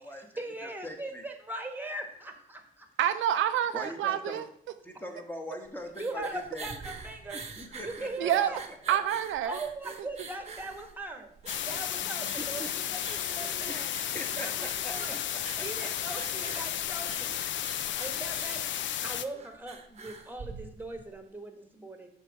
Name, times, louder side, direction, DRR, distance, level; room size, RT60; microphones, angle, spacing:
voice 1, 0.1-2.9 6.0-7.4 7.8-8.6 9.4-11.3 11.6-13.9 14.4-15.2 15.6-17.4 18.0-18.8 19.0-22.1, right 2 dB, 10° right, 5 dB, 1.5 m, -40 dB
voice 2, 0.8-1.2 3.7-4.4 4.8-6.2 6.5-6.7 7.6-8.3 8.9-9.0 12.0-12.1 12.6-12.7 13.7-14.9 15.5-15.9, equal, 10° left, 2 dB, 1.5 m, -41 dB
voice 3, 3.0-4.5 6.2-6.3 8.2-8.5 8.9-9.6, right 11 dB, 75° right, 10 dB, 0.5 m, -27 dB
sound 1, 5.7-21.1, right 4 dB, 30° right, 1.0 m, -46 dB
sound 2, 11.5-19.2, left 10 dB, 70° left, 0.5 m, -33 dB
6.6 x 4.4 x 6.3 m, 0.67 s
cardioid pair, 90°, 20 cm